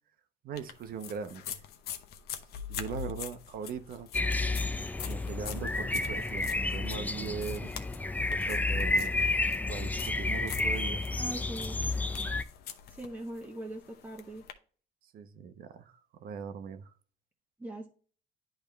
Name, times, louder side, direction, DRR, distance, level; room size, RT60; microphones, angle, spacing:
voice 1, 0.4-1.6 2.7-4.1 5.1-7.7 8.3-9.2 9.7-11.0 15.0-16.9, right 7 dB, 60° right, 0.8 m, -40 dB
sound 1, 0.5-14.5, left 9 dB, 70° left, 0.9 m, -45 dB
sound 2, 4.1-12.4, left 2 dB, 10° left, 0.4 m, -31 dB
voice 2, 11.1-11.8 12.9-14.4 17.6-17.9, right 1 dB, 10° right, 1.1 m, -41 dB
10.5 x 3.5 x 3.4 m
cardioid pair, 110°, 17 cm